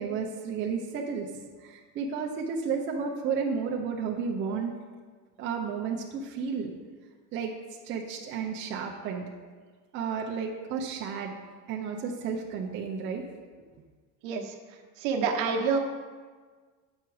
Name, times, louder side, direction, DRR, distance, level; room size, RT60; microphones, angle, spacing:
voice 1, 0.0-4.7 5.4-6.7 7.3-7.5 7.8-9.2 9.9-11.4 11.7-13.2, right 6 dB, 30° right, -1 dB, 0.6 m, -32 dB
voice 2, 14.2-14.5 15.0-15.8, right 5 dB, 60° right, 3 dB, 1.0 m, -27 dB
7.4 x 5.8 x 4.7 m, 1.5 s
cardioid pair, 165°, 37 cm